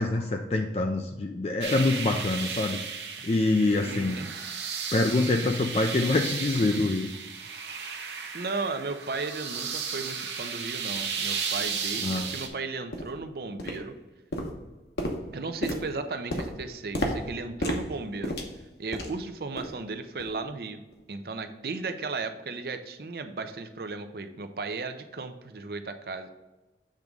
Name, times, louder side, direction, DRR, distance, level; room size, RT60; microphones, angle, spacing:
voice 1, 0.0-2.8 3.2-4.2 4.9-7.1 12.0-12.3, left 2 dB, 35° left, 4 dB, 0.4 m, -25 dB
sound 1, 1.6-12.5, right 6 dB, 75° right, 0.9 m, -34 dB
voice 2, 3.8-4.3 8.3-13.9 15.3-18.4 18.8-20.8 21.1-26.3, right 3 dB, 60° right, 8 dB, 0.6 m, -35 dB
sound 2, 10.9-11.0 11.6-11.7 12.2-12.4 12.9-13.2 13.6-14.0 14.3-19.3 19.6-19.8 20.2-20.4 20.9-21.0, equal, 70° left, 1.0 m, -33 dB
7.5 x 3.6 x 5.1 m, 1.0 s
head